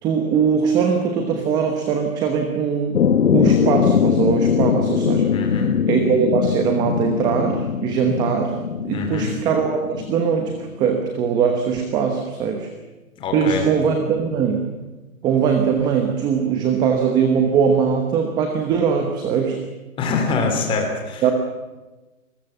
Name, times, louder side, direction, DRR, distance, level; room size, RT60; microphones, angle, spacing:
voice 1, 0.0-3.0 3.3-5.4 5.9-8.6 8.8-12.7 13.3-14.6 15.2-19.6 21.2-21.3, right 6 dB, 10° right, 5 dB, 1.0 m, -21 dB
sound 1, 2.9-10.7, left 7 dB, 75° left, 1.6 m, -21 dB
voice 2, 5.3-5.7 8.9-9.3 13.2-13.6 20.0-21.2, left 4 dB, 10° left, 3 dB, 3.4 m, -24 dB
26.0 x 20.5 x 7.3 m, 1.1 s
hypercardioid pair, 165°, 42 cm